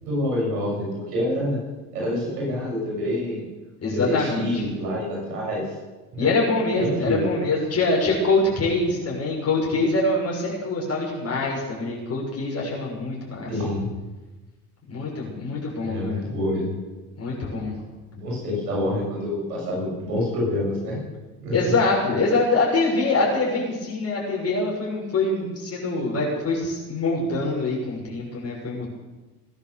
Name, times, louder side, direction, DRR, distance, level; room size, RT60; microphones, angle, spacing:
voice 1, 0.0-1.6 1.9-3.4 3.8-5.6 6.1-6.3 6.7-7.4 13.5-13.9 15.8-16.8 18.2-21.0 21.4-21.6, left 1 dB, 75° right, -3 dB, 7.0 m, -27 dB
voice 2, 3.8-4.7 6.2-13.5 14.9-16.2 17.2-17.7 21.5-28.9, left 3 dB, 30° left, -4 dB, 6.3 m, -24 dB
19.0 x 10.5 x 7.0 m, 1.2 s
figure-of-eight pair, 65°, 47 cm